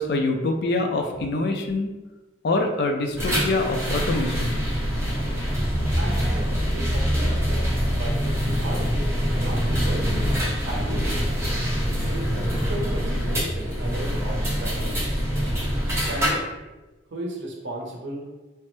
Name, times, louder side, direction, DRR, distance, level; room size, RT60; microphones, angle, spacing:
voice 1, 0.0-1.9 2.4-4.7, left 2 dB, 55° left, 4 dB, 0.4 m, -25 dB
sound 1, 3.2-16.3, equal, 15° right, 0.7 m, -24 dB
voice 2, 6.0-8.8 9.3-10.2 10.7-11.2 12.0-15.3 15.9-16.5 17.1-18.3, right 1 dB, 70° right, 0 dB, 0.6 m, -35 dB
3.2 x 2.0 x 3.0 m, 1.1 s
head